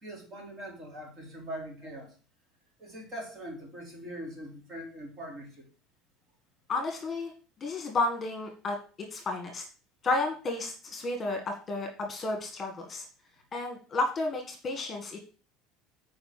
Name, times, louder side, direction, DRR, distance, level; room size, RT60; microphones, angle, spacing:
voice 1, 0.0-2.1 2.8-5.7, equal, 35° right, -1 dB, 4.0 m, -42 dB
voice 2, 6.7-7.3 7.6-9.6 10.0-13.1 13.5-15.2, left 2 dB, 25° left, 3 dB, 1.8 m, -32 dB
7.9 x 5.0 x 6.7 m, 0.37 s
cardioid pair, 135°, 0 cm